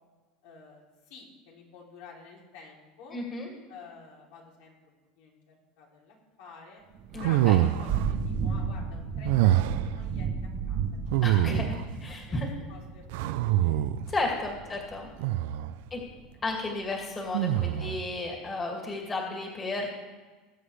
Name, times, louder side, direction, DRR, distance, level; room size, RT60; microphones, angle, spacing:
voice 1, 0.4-3.2 3.7-6.8 7.2-10.3 10.7-10.8 11.1-12.1 12.7-13.0 13.4-13.9 14.6-15.1 16.0-16.2, left 4 dB, 80° left, -2 dB, 3.0 m, -50 dB
voice 2, 3.1-3.5 7.1-7.6 11.2-12.5 14.1-15.1 15.9-16.0 16.4-19.9, left 2 dB, 25° left, 0 dB, 2.3 m, -33 dB
Thunder / Rain, 6.9-16.5, right 6 dB, 60° right, 2.4 m, -35 dB
sound 1, 7.2-8.1 9.2-10.0 11.1-11.9 13.1-14.1 15.2-15.7 17.3-18.0, right 13 dB, 80° right, 0.5 m, -25 dB
20.0 x 8.0 x 3.3 m, 1.3 s
supercardioid pair, 130°, 0 cm